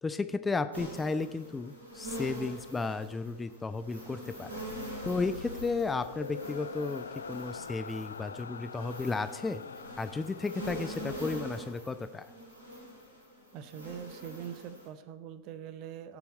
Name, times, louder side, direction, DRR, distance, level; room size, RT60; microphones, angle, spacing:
voice 1, 0.0-4.6 5.0-9.6 10.0-12.3, left 4 dB, 15° left, 12 dB, 0.5 m, -34 dB
sound 1, 0.7-14.9, equal, 75° right, 3.7 m, -44 dB
sound 2, 4.7-12.1, left 5 dB, 70° left, 0.4 m, -45 dB
voice 2, 13.5-16.2, right 9 dB, 40° right, 14 dB, 0.8 m, -43 dB
16.5 x 7.0 x 4.1 m, 1.1 s
figure-of-eight pair, 90°, 0 cm